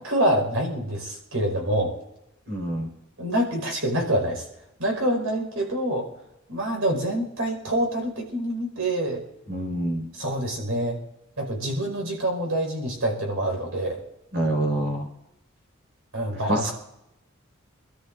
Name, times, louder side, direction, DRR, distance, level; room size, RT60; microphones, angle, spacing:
voice 1, 0.0-1.9 3.2-4.5 4.8-6.1 6.5-9.2 10.1-11.0 11.4-14.0 16.1-16.7, right 1 dB, 80° right, 1 dB, 4.9 m, -26 dB
voice 2, 2.5-2.9 9.5-10.1 14.3-15.1 16.5-16.7, right 1 dB, 55° right, 0 dB, 4.8 m, -26 dB
27.5 x 13.5 x 2.5 m, 0.86 s
head